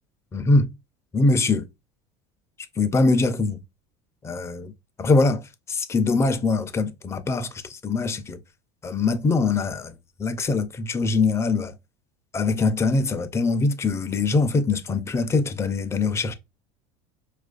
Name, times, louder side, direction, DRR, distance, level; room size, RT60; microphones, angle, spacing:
voice 1, 0.3-0.7 1.1-1.6 2.8-3.6 4.2-4.7 5.0-5.4 5.7-8.4 8.8-11.7 12.3-16.3, left 3 dB, 15° left, 0.4 m, -23 dB
4.5 x 2.4 x 2.4 m
supercardioid pair, 120°, 16 cm